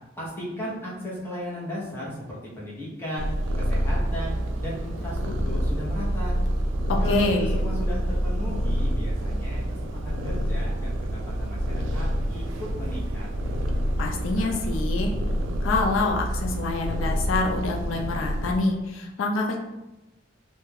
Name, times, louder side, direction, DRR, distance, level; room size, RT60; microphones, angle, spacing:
voice 1, 0.2-3.3 3.6-6.4 7.0-11.6 11.9-13.3, left 1 dB, 10° left, -7 dB, 0.7 m, -35 dB
Purr, 3.2-18.6, equal, 80° right, 0.3 m, -27 dB
voice 2, 6.9-7.6 14.0-15.1 15.6-19.6, left 3 dB, 90° left, 1 dB, 0.4 m, -26 dB
2.3 x 2.1 x 3.3 m, 0.98 s
head